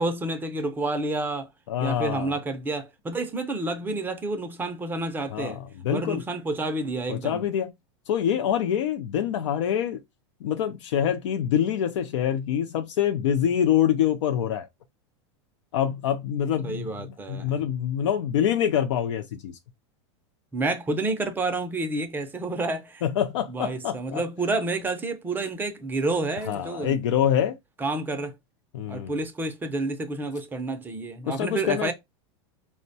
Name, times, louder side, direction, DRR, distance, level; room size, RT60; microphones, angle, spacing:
voice 1, 0.0-1.5 1.8-5.6 5.9-7.4 16.6-17.5 20.5-23.0 23.5-27.0 27.8-28.3 28.9-31.9, right 2 dB, 15° right, 0.4 m, -29 dB
voice 2, 1.7-2.4 5.3-6.2 7.1-7.7 8.1-10.0 10.4-14.7 15.7-19.6 23.0-24.2 26.5-27.5 28.7-29.2 31.3-31.9, left 9 dB, 85° left, 0.4 m, -25 dB
4.3 x 2.1 x 2.6 m
supercardioid pair, 140°, 15 cm